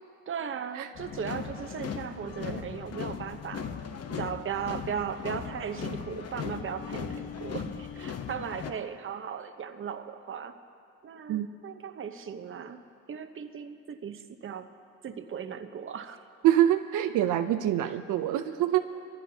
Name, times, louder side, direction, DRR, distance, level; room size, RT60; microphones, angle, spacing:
voice 1, 0.3-3.6 4.1-10.5 11.0-12.8 13.1-14.7 15.0-16.2 17.8-18.0, right 7 dB, 45° right, 8 dB, 0.9 m, -37 dB
sound 1, 0.9-8.7, left 7 dB, 55° left, 1.0 m, -38 dB
voice 2, 16.4-18.8, right 12 dB, 85° right, 8 dB, 0.7 m, -25 dB
24.0 x 14.5 x 2.8 m, 2.4 s
cardioid pair, 90°, 30 cm